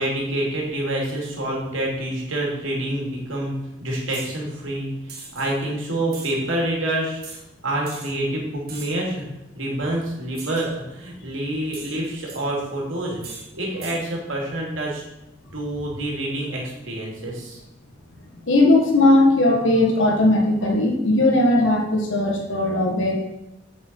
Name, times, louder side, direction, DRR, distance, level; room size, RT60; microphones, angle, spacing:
voice 1, 0.0-3.5 3.8-4.9 5.3-7.4 7.6-9.2 9.5-13.2 13.5-15.0 15.5-17.6, right 1 dB, 85° right, -2 dB, 2.8 m, -27 dB
sound 1, 4.1-4.4 5.1-5.5 6.1-6.3 7.2-7.4 7.9-8.1 8.7-9.1 10.4-10.7 11.7-12.4 13.2-13.5 13.8-14.0, right 4 dB, 50° right, 1.7 m, -39 dB
voice 2, 18.5-23.2, left 2 dB, 80° left, 1 dB, 1.6 m, -18 dB
8.1 x 6.9 x 4.6 m, 0.91 s
head